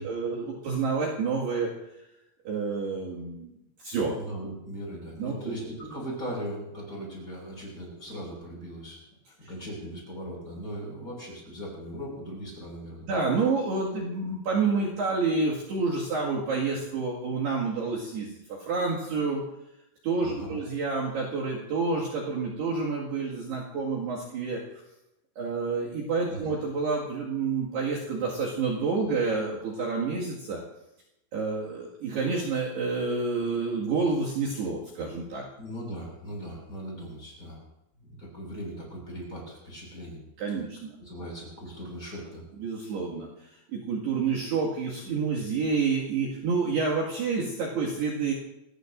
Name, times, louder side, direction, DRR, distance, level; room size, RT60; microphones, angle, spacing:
voice 1, 0.0-1.7 2.5-3.5 3.8-4.2 5.2-5.5 13.1-19.4 20.0-24.6 25.4-30.6 31.3-35.4 40.4-41.0 42.6-43.3 43.7-48.3, right 4 dB, 60° right, -5 dB, 3.6 m, -28 dB
voice 2, 4.1-9.0 9.3-13.1 20.2-20.6 26.3-26.5 35.6-37.6 38.0-40.2 41.0-42.4, equal, 15° left, -3 dB, 6.7 m, -39 dB
26.5 x 19.5 x 2.6 m, 0.87 s
omnidirectional pair, 6.0 m